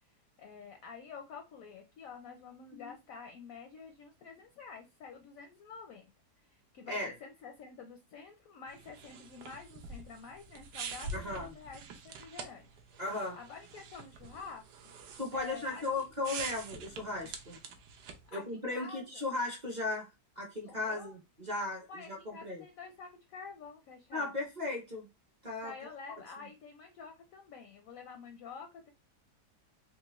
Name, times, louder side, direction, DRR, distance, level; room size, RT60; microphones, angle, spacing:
voice 1, 0.4-6.1 6.4-12.8 13.3-16.0 18.3-19.2 20.7-21.1 21.9-24.3 25.6-28.9, left 5 dB, 70° left, 5 dB, 0.8 m, -49 dB
sound 1, 8.7-18.3, right 4 dB, 80° right, 1.2 m, -46 dB
voice 2, 11.1-11.5 13.0-13.4 15.2-17.6 18.3-20.1 20.4-22.6 24.1-25.1 25.4-25.7, left 2 dB, 40° right, 0 dB, 0.7 m, -36 dB
3.7 x 2.3 x 2.9 m, 0.25 s
omnidirectional pair, 1.8 m